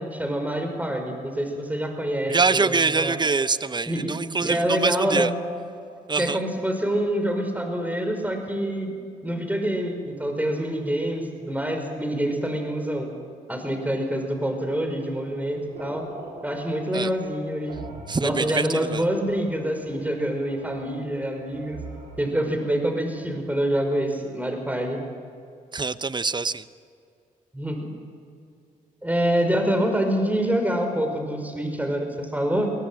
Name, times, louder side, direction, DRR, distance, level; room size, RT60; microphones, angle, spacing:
voice 1, 0.0-3.2 3.9-4.1 4.4-5.4 6.2-8.9 9.2-13.1 13.5-16.0 16.4-17.8 18.2-21.8 22.2-25.0 27.5-27.8 29.0-32.7, right 1 dB, 10° right, 5 dB, 5.6 m, -26 dB
voice 2, 2.3-5.3 6.1-6.4 16.9-17.1 18.1-19.0 25.7-26.6, right 4 dB, 25° right, 15 dB, 0.9 m, -24 dB
sound 1, 15.3-22.5, right 4 dB, 85° right, 3.1 m, -44 dB
22.5 x 18.0 x 7.7 m, 2.3 s
supercardioid pair, 50°, 16 cm